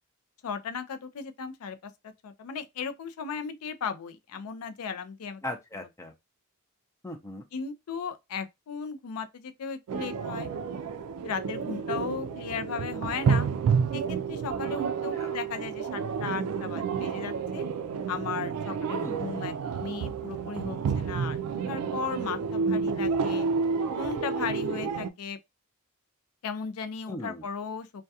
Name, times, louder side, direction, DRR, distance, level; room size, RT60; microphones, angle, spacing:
voice 1, 0.4-1.9 2.2-5.4 7.5-10.5 11.2-13.5 13.9-17.6 18.1-21.4 21.7-23.5 24.0-25.4 26.4-28.0, left 6 dB, 80° left, 0.4 m, -36 dB
voice 2, 5.4-6.1 7.0-7.4 15.1-15.4 18.9-19.3 27.1-27.4, left 1 dB, 15° left, 0.4 m, -38 dB
sound 1, 9.9-25.1, right 5 dB, 80° right, 0.3 m, -30 dB
2.3 x 2.2 x 2.6 m
head